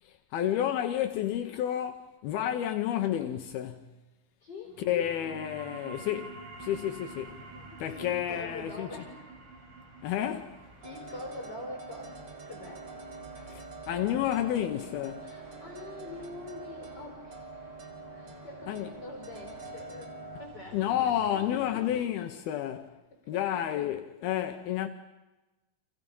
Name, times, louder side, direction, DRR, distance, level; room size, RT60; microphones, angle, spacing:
voice 1, 0.0-3.9 4.8-7.4 7.8-8.9 10.0-10.6 13.4-15.3 18.7-18.9 20.7-23.0 23.3-24.9, left 11 dB, 75° left, 2.8 m, -31 dB
voice 2, 4.4-4.8 7.5-9.3 10.8-12.2 12.5-12.9 15.2-17.5 18.1-20.8 21.7-21.9 23.1-23.4, left 2 dB, 25° left, 4.9 m, -44 dB
sound 1, 4.7-15.8, right 3 dB, 60° right, 4.1 m, -49 dB
sound 2, 6.5-21.9, right 1 dB, 15° right, 6.8 m, -55 dB
sound 3, 10.8-20.4, right 3 dB, 45° right, 1.5 m, -45 dB
30.0 x 26.5 x 5.5 m
omnidirectional pair, 4.5 m